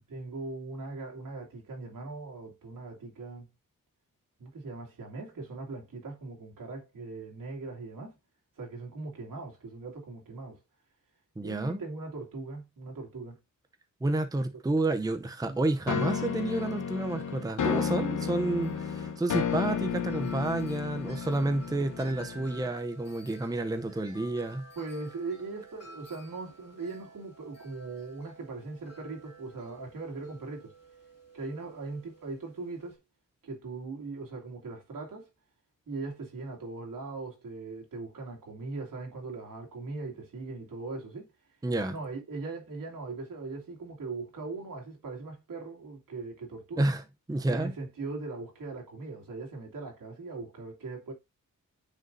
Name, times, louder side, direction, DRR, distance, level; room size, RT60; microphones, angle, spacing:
voice 1, 0.1-3.5 4.4-8.2 8.6-10.6 11.4-13.4 15.4-15.6 24.8-30.7 31.3-33.0 33.4-35.3 35.9-41.3 41.9-46.9 47.5-51.1, right 3 dB, 80° right, 2.7 m, -40 dB
voice 2, 11.4-11.8 14.0-24.7 41.6-41.9 46.8-47.0 47.3-47.7, right 2 dB, 10° right, 0.6 m, -30 dB
Wind chime, 15.1-33.0, right 2 dB, 50° left, 2.5 m, -53 dB
sound 1, 15.9-22.7, left 7 dB, 65° left, 1.1 m, -32 dB
9.4 x 5.2 x 2.7 m
cardioid pair, 85°, 33 cm